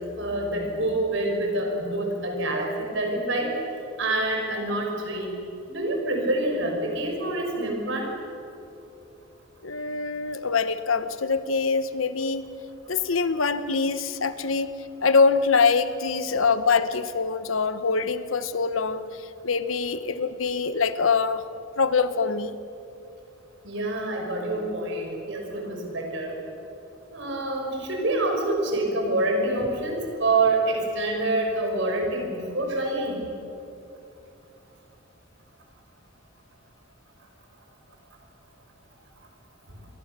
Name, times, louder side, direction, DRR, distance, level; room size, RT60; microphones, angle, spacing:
voice 1, 0.2-3.5 4.0-5.4 5.7-8.1 23.6-26.4 27.1-33.3, right 2 dB, 65° right, 1 dB, 5.9 m, -26 dB
voice 2, 9.6-12.5 12.9-14.7 15.0-19.0 19.4-21.4 21.8-22.6, left 4 dB, 85° left, 12 dB, 1.2 m, -24 dB
28.0 x 23.0 x 6.9 m, 2.8 s
head